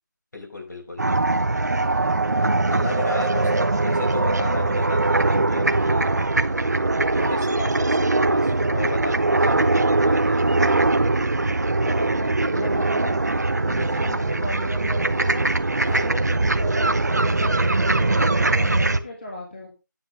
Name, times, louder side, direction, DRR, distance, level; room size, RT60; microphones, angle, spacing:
voice 1, 0.3-1.0 2.7-3.5 3.8-6.1 7.1-10.7 13.9-14.0 15.9-16.1, left 2 dB, 60° left, 2 dB, 5.3 m, -34 dB
sound 1, 1.0-19.0, right 2 dB, 55° right, 1.0 m, -21 dB
voice 2, 3.1-3.8 11.8-13.2 13.6-15.5 15.9-16.3 16.6-19.8, left 1 dB, 30° left, 0 dB, 1.9 m, -36 dB
10.5 x 9.8 x 3.7 m, 0.27 s
figure-of-eight pair, 175°, 11 cm